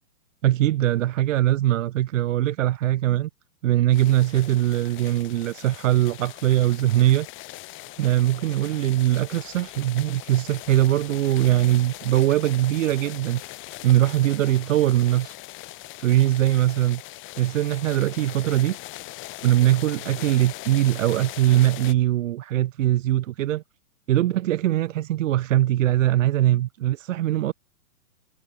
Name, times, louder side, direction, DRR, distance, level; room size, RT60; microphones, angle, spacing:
voice 1, 0.4-3.3 3.6-7.3 8.0-13.4 13.8-15.3 16.0-17.0 17.4-18.8 19.4-23.6 24.1-27.5, right 14 dB, 55° right, 0.7 m, -21 dB
sound 1, 3.9-21.9, left 19 dB, 25° left, 3.5 m, -41 dB
hypercardioid pair, 145°, 46 cm